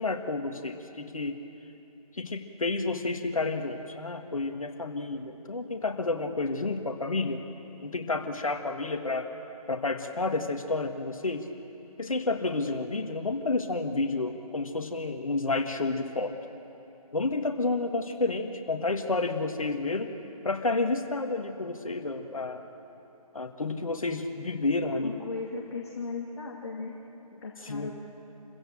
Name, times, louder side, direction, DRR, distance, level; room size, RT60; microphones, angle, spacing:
voice 1, 0.0-1.4 2.1-7.4 7.8-9.3 9.7-11.5 12.0-16.4 17.1-20.1 20.4-22.7 23.3-25.1 27.7-27.9, left 3 dB, 60° left, 5 dB, 1.9 m, -30 dB
voice 2, 25.0-26.9 27.3-27.9, left 4 dB, 40° left, -2 dB, 2.5 m, -37 dB
28.0 x 15.5 x 7.7 m, 3.0 s
figure-of-eight pair, 155°, 20 cm